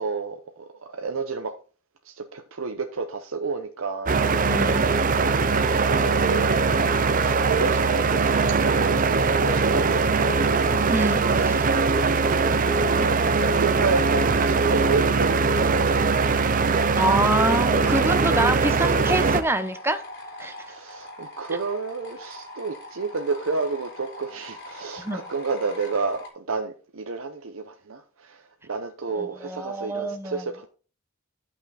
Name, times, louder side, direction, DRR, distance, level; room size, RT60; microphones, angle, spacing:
voice 1, 0.0-1.5 2.0-4.3 5.8-6.7 7.1-10.5 13.5-16.3 20.6-30.7, right 4 dB, 70° right, 6 dB, 0.8 m, -31 dB
sound 1, 4.1-19.4, right 4 dB, 40° right, 0.7 m, -21 dB
voice 2, 4.4-4.9 10.9-11.7 17.0-20.0 20.4-20.5 25.0-25.2 29.1-30.4, right 2 dB, 10° right, 9 dB, 0.8 m, -26 dB
sound 2, 17.8-26.3, left 1 dB, 55° left, 3.2 m, -42 dB
10.5 x 5.9 x 4.1 m, 0.38 s
head